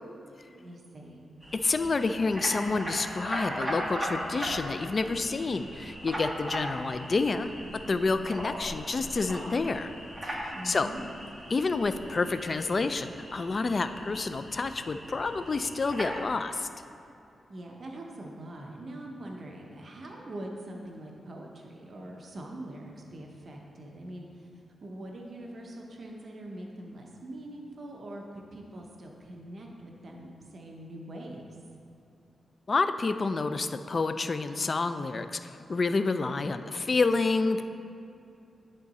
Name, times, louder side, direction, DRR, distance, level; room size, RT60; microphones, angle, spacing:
voice 1, 0.5-1.3 10.5-11.0 17.5-24.5 24.8-31.6, right 1 dB, 55° right, 0 dB, 0.8 m, -43 dB
sound 1, 1.4-16.2, equal, 10° right, 1.3 m, -39 dB
voice 2, 1.5-9.9 10.2-10.9 11.5-16.7 32.7-37.6, left 3 dB, 45° left, 10 dB, 0.3 m, -29 dB
9.8 x 3.7 x 4.1 m, 2.6 s
cardioid pair, 85°, 0 cm